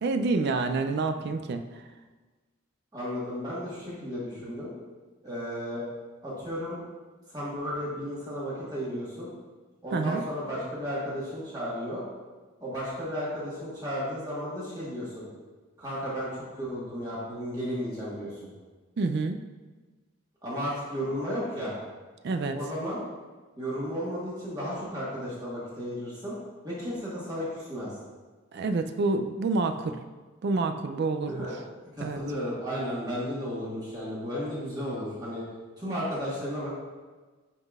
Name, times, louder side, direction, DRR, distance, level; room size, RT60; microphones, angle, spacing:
voice 1, 0.0-1.6 9.9-10.2 19.0-19.4 22.2-22.6 28.5-30.0 30.4-31.5 32.0-32.2, right 3 dB, 50° right, 7 dB, 0.3 m, -28 dB
voice 2, 2.9-4.7 5.2-5.8 6.2-6.8 7.3-9.3 9.8-12.0 12.6-15.2 15.8-18.4 20.4-21.7 22.5-23.0 23.6-26.4 26.6-27.9 31.3-35.4 35.8-36.7, equal, 20° right, -8 dB, 1.4 m, -34 dB
10.5 x 3.8 x 2.4 m, 1.3 s
head